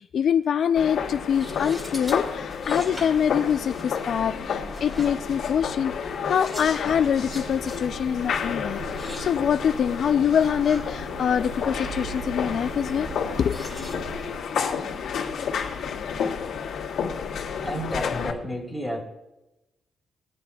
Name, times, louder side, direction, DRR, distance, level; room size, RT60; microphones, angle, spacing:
voice 1, 0.0-13.1 13.4-13.7, left 8 dB, 55° left, 9 dB, 0.3 m, -25 dB
sound 1, 0.8-18.3, left 7 dB, 75° left, 2.0 m, -31 dB
sound 2, 0.9-16.4, right 1 dB, 20° right, 3.3 m, -43 dB
sound 3, 6.9-14.4, right 4 dB, 65° right, 0.7 m, -41 dB
voice 2, 17.6-19.0, equal, 5° right, -1 dB, 3.2 m, -31 dB
19.5 x 9.9 x 2.3 m, 0.95 s
cardioid pair, 135°, 0 cm